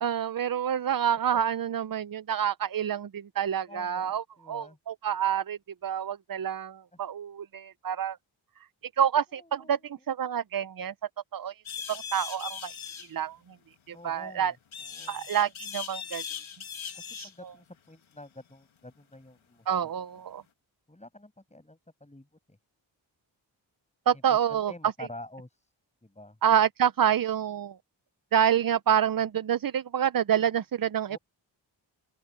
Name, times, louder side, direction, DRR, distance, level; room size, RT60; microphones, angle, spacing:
voice 1, 0.0-8.2 9.0-10.9 11.3-11.6 11.9-13.4 13.9-14.5 15.1-16.2 16.7-16.9 17.2-17.3 19.7-20.4 24.1-24.7 26.4-27.8 28.3-31.2, right 9 dB, 45° right, 0.6 m, -28 dB
voice 2, 3.7-4.8 9.3-9.8 13.9-15.2 17.2-20.2 20.9-22.6 24.3-25.7 26.0-26.4 31.1-31.2, left 1 dB, 15° left, 6.8 m, -48 dB
sound 1, 11.6-13.1 14.7-17.3, left 7 dB, 80° left, 2.1 m, -39 dB
open air
wide cardioid pair, 80°, 47 cm